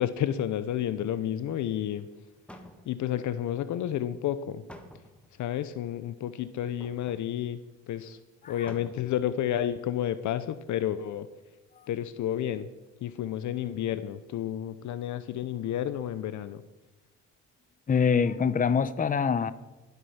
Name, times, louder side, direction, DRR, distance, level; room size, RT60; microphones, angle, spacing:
voice 1, 0.0-2.1 2.9-4.6 5.4-7.6 7.9-8.2 8.5-11.3 11.9-12.7 13.0-16.6, left 11 dB, 75° left, 13 dB, 0.7 m, -31 dB
sound 1, 2.1-2.2 2.5-3.2 4.7-5.4 6.8-7.3 7.8-7.9 8.1-8.2 8.7-9.2 9.6-9.7, equal, 5° left, 1.4 m, -49 dB
voice 2, 17.9-19.5, left 6 dB, 25° left, 14 dB, 0.7 m, -25 dB
19.0 x 8.1 x 5.7 m, 1.1 s
cardioid pair, 90°, 30 cm